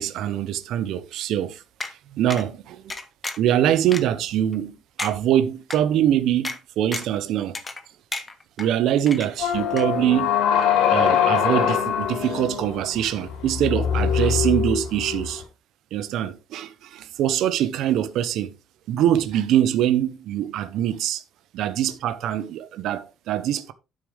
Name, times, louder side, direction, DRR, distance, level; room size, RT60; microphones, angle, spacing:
voice 1, 0.0-1.6 1.9-2.9 3.4-7.6 8.6-10.4 10.9-15.4 15.9-18.5 18.9-21.2 21.5-23.7, right 11 dB, 55° right, 0.9 m, -23 dB
sound 1, 1.8-1.9 2.3-2.4 2.9-3.5 3.9-4.0 4.5-4.6 5.0-5.1 5.7-5.8 6.4-6.6 6.9-7.2 7.5-7.8 8.1-8.7 9.1-9.5 9.8-9.9, left 3 dB, 15° left, 0.9 m, -32 dB
sound 2, 9.4-15.4, left 8 dB, 80° left, 3.3 m, -23 dB
9.6 x 7.5 x 3.4 m
cardioid pair, 170°, 0 cm